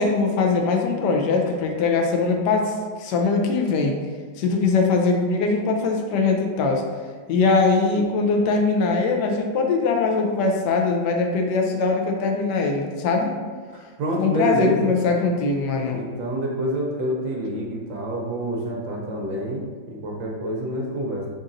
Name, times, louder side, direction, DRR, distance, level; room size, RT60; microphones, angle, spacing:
voice 1, 0.0-2.7 3.0-4.0 4.4-6.8 7.3-13.3 14.2-16.0, left 4 dB, 70° left, 2 dB, 1.1 m, -21 dB
voice 2, 13.7-14.9 15.9-21.3, right 1 dB, 75° right, -1 dB, 1.3 m, -27 dB
4.0 x 3.9 x 2.5 m, 1.5 s
omnidirectional pair, 2.2 m